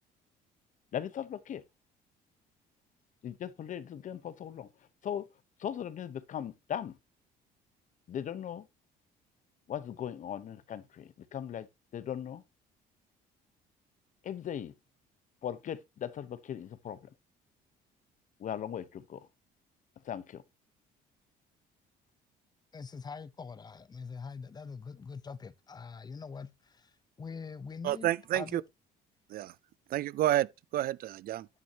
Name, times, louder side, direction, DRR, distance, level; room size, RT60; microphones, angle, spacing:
voice 1, 0.9-1.6 3.2-4.7 5.0-5.3 5.6-7.0 8.1-8.7 9.7-11.7 11.9-12.4 14.2-14.7 15.4-17.0 18.4-19.2 20.0-20.4, left 9 dB, 50° left, 0.9 m, -38 dB
voice 2, 22.7-28.6, left 5 dB, 25° left, 0.7 m, -44 dB
voice 3, 27.8-28.6 29.3-29.5 29.9-30.5 30.7-31.5, right 13 dB, 60° right, 0.4 m, -29 dB
9.4 x 8.6 x 2.8 m
cardioid pair, 110°, 17 cm